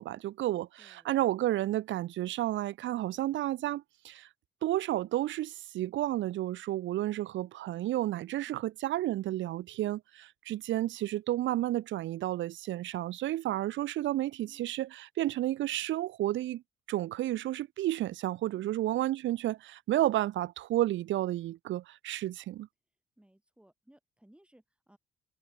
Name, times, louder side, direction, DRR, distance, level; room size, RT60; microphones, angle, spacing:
voice 1, 0.0-4.3 4.6-16.6 16.9-22.7, right 14 dB, 70° right, 0.6 m, -31 dB
voice 2, 0.8-1.1 14.4-14.7 18.6-18.8 23.2-25.0, right 1 dB, 5° right, 7.1 m, -62 dB
cardioid pair, 90°, 20 cm